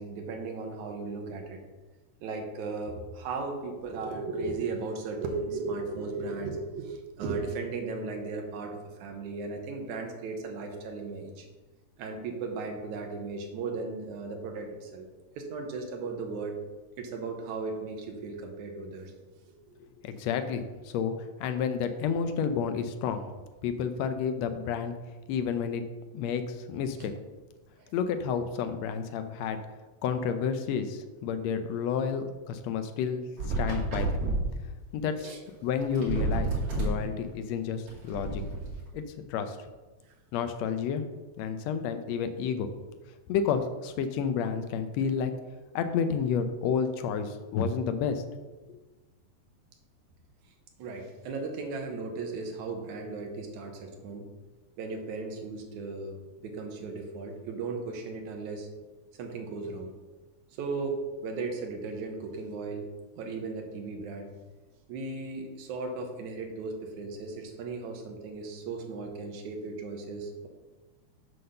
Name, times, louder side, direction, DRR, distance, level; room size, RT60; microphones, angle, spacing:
voice 1, 0.0-1.6 2.2-11.5 12.0-15.1 15.4-16.6 17.0-19.1 19.4-19.8 27.0-27.1 27.8-27.9 35.2-35.4 50.8-54.2 54.8-58.7 59.2-59.9 60.5-62.9 63.2-64.3 64.9-70.5, right 3 dB, 80° right, 3 dB, 2.4 m, -36 dB
voice 2, 20.0-21.1 21.4-23.3 23.6-24.9 25.3-25.8 26.1-27.1 27.9-29.6 30.0-33.2 33.6-34.2 34.9-35.4 35.6-36.5 36.8-38.4 38.9-39.0 39.3-39.6 40.3-41.0 41.4-42.7 43.3-45.3 45.7-48.2, left 7 dB, 75° left, 8 dB, 1.7 m, -30 dB
sound 1, 33.4-34.5 35.5-35.6 35.8-37.0 37.9-38.7, right 2 dB, 55° right, 3.2 m, -29 dB
7.7 x 3.9 x 6.5 m, 1.2 s
omnidirectional pair, 3.4 m